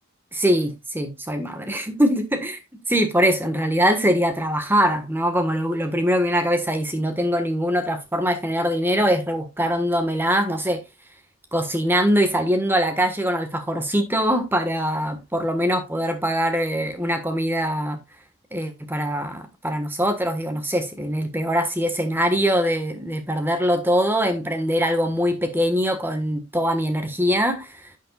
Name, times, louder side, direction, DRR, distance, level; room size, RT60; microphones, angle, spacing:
voice 1, 0.3-2.6 2.9-10.8 11.5-18.0 18.5-27.9, equal, 10° right, 1.4 m, -22 dB
10.0 x 8.6 x 2.4 m
head